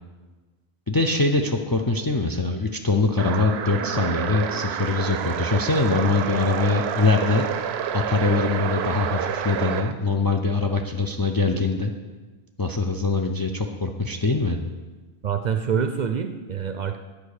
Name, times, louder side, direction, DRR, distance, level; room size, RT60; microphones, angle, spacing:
voice 1, 0.9-7.5 7.9-11.9 12.6-14.6, left 3 dB, 30° left, 3 dB, 0.4 m, -23 dB
sound 1, 3.2-9.9, right 8 dB, 80° right, 0.8 m, -28 dB
voice 2, 15.2-17.0, right 7 dB, 55° right, 7 dB, 0.6 m, -26 dB
9.9 x 5.0 x 6.5 m, 1.3 s
omnidirectional pair, 1.1 m